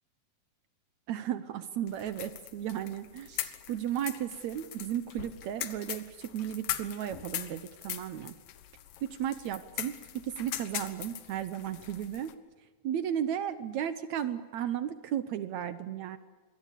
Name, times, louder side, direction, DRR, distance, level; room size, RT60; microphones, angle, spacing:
voice 1, 1.1-8.3 9.0-12.3 12.8-16.2, right 10 dB, 75° right, 12 dB, 1.6 m, -34 dB
sound 1, 1.9-12.3, left 12 dB, 70° left, 2.7 m, -41 dB
26.0 x 21.5 x 8.4 m, 1.4 s
omnidirectional pair, 4.4 m